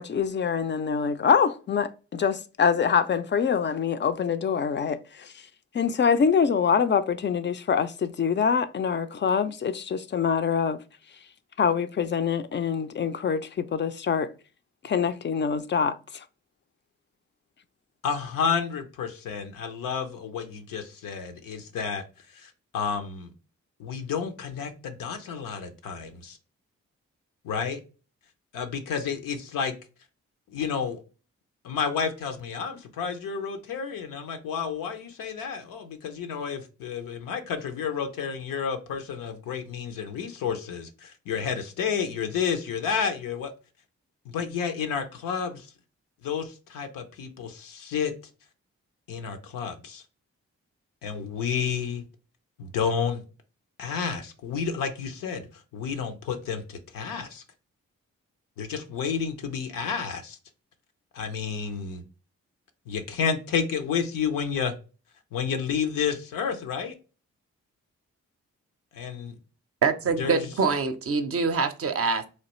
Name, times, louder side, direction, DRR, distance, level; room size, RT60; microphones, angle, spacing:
voice 1, 0.0-5.0 5.7-10.8 11.6-14.3 14.8-16.0, left 6 dB, 35° left, 0.4 m, -25 dB
voice 2, 18.0-22.0 22.3-23.3 23.8-26.4 27.4-27.8 28.5-29.7 30.5-31.0 31.6-43.5 44.2-45.7 46.2-48.1 49.1-50.0 51.0-52.0 52.6-53.2 53.8-55.5 55.7-57.4 58.6-60.4 61.1-62.0 62.9-64.7 65.3-66.9 68.9-69.3 70.2-70.5, left 6 dB, 80° left, 0.6 m, -30 dB
voice 3, 69.8-72.3, right 5 dB, 45° right, 0.5 m, -25 dB
3.2 x 2.3 x 3.0 m
supercardioid pair, 40°, 33 cm